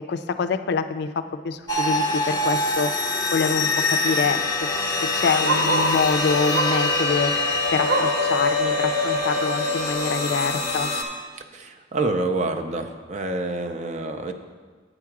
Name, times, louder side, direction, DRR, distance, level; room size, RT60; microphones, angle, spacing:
voice 1, 0.1-1.1 1.4-2.9 3.3-4.4 5.1-10.9, left 5 dB, 60° left, 10 dB, 0.4 m, -25 dB
sound 1, 1.7-11.0, left 2 dB, 20° left, 0.7 m, -24 dB
Bark, 2.3-2.5 2.9-3.0 3.2-6.0 6.5-6.9 7.3-8.3 8.7-8.8 9.2-9.3 10.0-10.1, right 2 dB, 60° right, 0.9 m, -27 dB
voice 2, 11.5-14.3, right 2 dB, 40° right, 6 dB, 0.5 m, -27 dB
7.9 x 4.8 x 5.9 m, 1.5 s
head